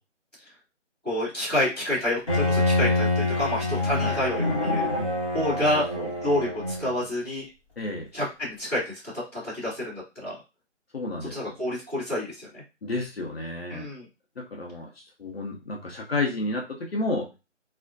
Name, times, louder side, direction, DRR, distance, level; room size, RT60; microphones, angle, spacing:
voice 1, 1.0-4.9 5.3-5.8 6.2-7.5 8.1-10.3 11.3-12.6 13.7-14.1, left 1 dB, ahead, -19 dB, 0.9 m, -28 dB
Bowed string instrument, 2.3-7.0, left 2 dB, 25° left, 0.9 m, -26 dB
voice 2, 5.5-6.1 7.8-8.1 10.9-11.3 12.8-13.9 14.4-17.3, left 2 dB, 55° left, 0 dB, 0.6 m, -31 dB
2.4 x 2.1 x 2.5 m, 0.28 s
figure-of-eight pair, 155°, 37 cm